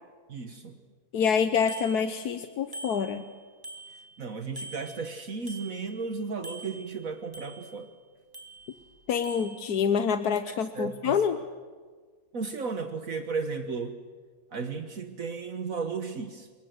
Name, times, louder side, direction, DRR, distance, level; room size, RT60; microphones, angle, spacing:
voice 1, 0.3-0.8 4.2-7.9 10.5-11.2 12.3-14.0 14.5-16.5, right 4 dB, 60° right, 7 dB, 1.8 m, -34 dB
voice 2, 1.1-3.3 9.1-11.4, left 7 dB, 85° left, 10 dB, 1.5 m, -26 dB
Bicycle bell, 1.7-2.4 2.7-4.2 4.6-6.1 6.4-7.9 8.3-8.9 9.2-9.6, right 1 dB, 15° right, 2.9 m, -44 dB
26.5 x 23.5 x 7.8 m, 1.5 s
omnidirectional pair, 1.6 m